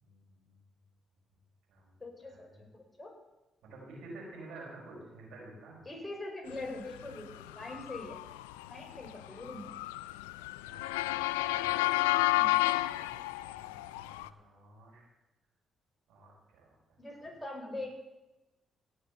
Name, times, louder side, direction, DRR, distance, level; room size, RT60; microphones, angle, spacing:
voice 1, 0.0-0.5 1.7-1.9 2.2-2.4 3.6-5.9 7.6-7.7 10.4-11.8 12.1-15.0 16.1-16.7, right 2 dB, 75° right, -3 dB, 5.1 m, -51 dB
voice 2, 2.0-2.5 2.7-3.1 5.8-8.2 8.7-9.7 12.3-12.6 17.0-18.1, left 2 dB, 25° left, 0 dB, 5.0 m, -42 dB
Motor vehicle (road) / Siren, 7.0-14.3, left 18 dB, 90° left, 0.3 m, -32 dB
17.0 x 6.7 x 6.9 m, 1.0 s
hypercardioid pair, 50°, 0 cm